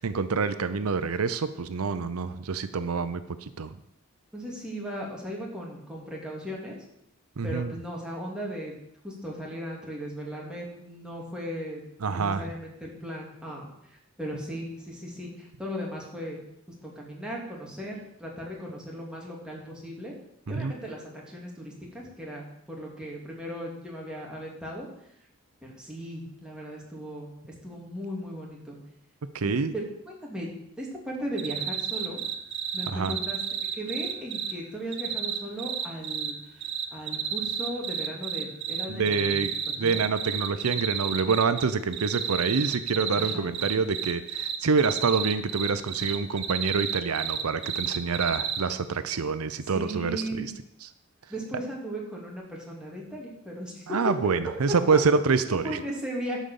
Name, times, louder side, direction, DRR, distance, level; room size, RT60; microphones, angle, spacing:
voice 1, 0.0-3.8 7.4-7.7 12.0-12.5 20.5-20.7 29.3-29.7 32.9-33.1 38.9-39.5 39.8-50.5 50.8-50.9 53.9-55.8, right 4 dB, 90° right, 12 dB, 0.6 m, -27 dB
voice 2, 4.3-6.8 7.4-8.7 9.0-11.8 12.1-16.4 16.8-20.1 20.5-24.9 25.8-28.8 29.4-29.8 30.2-30.5 30.8-32.2 32.7-33.4 33.7-36.4 36.9-39.3 39.8-40.0 43.2-43.5 49.7-50.5 51.3-54.0 54.9-55.0 55.5-56.4, equal, 5° right, -3 dB, 2.6 m, -37 dB
sound 1, 31.4-34.5 34.9-36.3 36.6-41.6 41.9-48.6, right 9 dB, 55° right, 0.9 m, -31 dB
11.5 x 5.2 x 7.0 m, 0.78 s
head